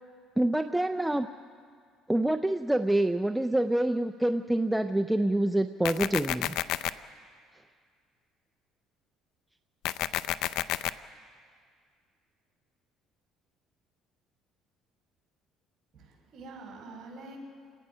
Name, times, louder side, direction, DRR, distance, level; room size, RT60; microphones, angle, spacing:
voice 1, 0.4-1.3 2.1-6.5, right 1 dB, 5° right, 7 dB, 0.4 m, -26 dB
sound 1, 5.8-6.9 9.8-10.9, left 13 dB, 75° left, 0.5 m, -30 dB
voice 2, 15.9-17.4, right 3 dB, 45° right, 0 dB, 6.1 m, -46 dB
28.5 x 18.0 x 5.6 m, 2.1 s
cardioid pair, 130°, 0 cm